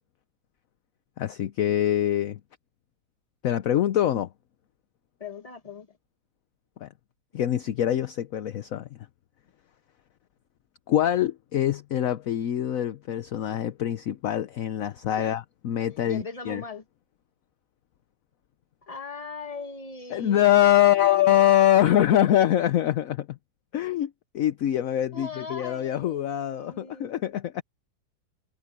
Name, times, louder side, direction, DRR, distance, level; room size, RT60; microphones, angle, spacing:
voice 1, 1.2-2.4 3.4-4.3 6.8-6.9 7.3-8.9 10.9-16.6 20.1-23.4 23.7-27.6, left 12 dB, 60° left, 1.0 m, -24 dB
voice 2, 5.2-6.0 15.1-15.3 15.9-16.8 18.8-21.4 25.1-27.4, left 5 dB, 20° left, 1.5 m, -39 dB
omnidirectional pair, 2.0 m